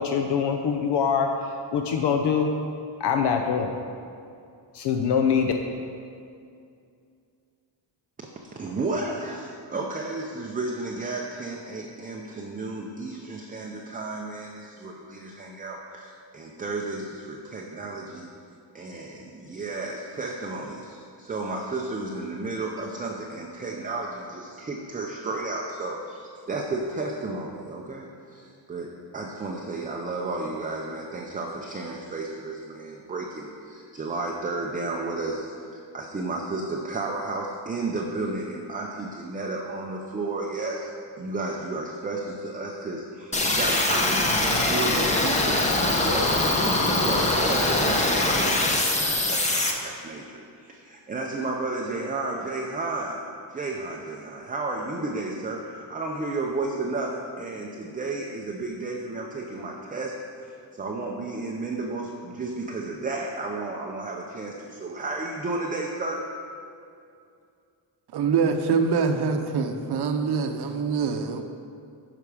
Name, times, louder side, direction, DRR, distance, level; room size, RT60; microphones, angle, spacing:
voice 1, 0.0-2.5 3.0-3.8 4.7-5.5, left 6 dB, 65° left, 4 dB, 0.6 m, -24 dB
voice 2, 8.6-18.3 18.7-53.2 53.5-66.3, right 2 dB, 20° right, 0 dB, 0.5 m, -32 dB
sound 1, 43.3-49.7, left 2 dB, 15° left, 0.7 m, -23 dB
voice 3, 68.1-71.4, right 5 dB, 60° right, 6 dB, 0.8 m, -24 dB
10.0 x 5.8 x 4.8 m, 2.4 s
wide cardioid pair, 160°, 44 cm